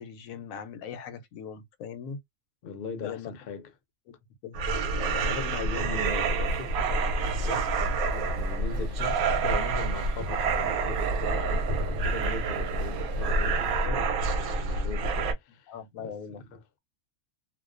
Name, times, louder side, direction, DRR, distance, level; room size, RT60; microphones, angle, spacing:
voice 1, 0.0-2.2 3.0-3.3 4.1-4.2 4.4-4.6 5.0-5.6 15.3-15.4 15.7-16.4, left 7 dB, 85° left, 1.0 m, -40 dB
voice 2, 2.6-3.7 5.1-7.7 8.1-15.7 16.0-16.6, left 5 dB, 55° left, 0.7 m, -40 dB
sound 1, 4.5-15.3, right 3 dB, 90° right, 1.1 m, -28 dB
sound 2, 6.0-13.9, right 6 dB, 65° right, 0.8 m, -44 dB
2.3 x 2.2 x 2.4 m
omnidirectional pair, 1.4 m